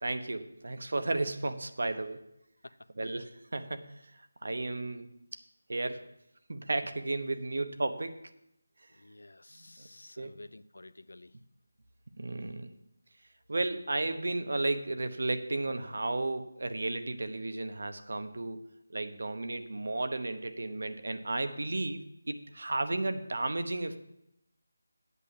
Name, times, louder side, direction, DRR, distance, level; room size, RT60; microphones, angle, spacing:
voice 1, 0.0-2.2 3.0-3.9 4.4-5.1 5.7-6.0 6.5-8.3 9.5-9.9 10.2-10.3 12.2-12.7 13.5-18.6 18.9-24.0, right 2 dB, 55° right, 9 dB, 0.9 m, -33 dB
voice 2, 8.9-11.3, left 2 dB, 90° left, 16 dB, 0.5 m, -51 dB
8.3 x 7.4 x 7.3 m, 0.81 s
figure-of-eight pair, 180°, 0 cm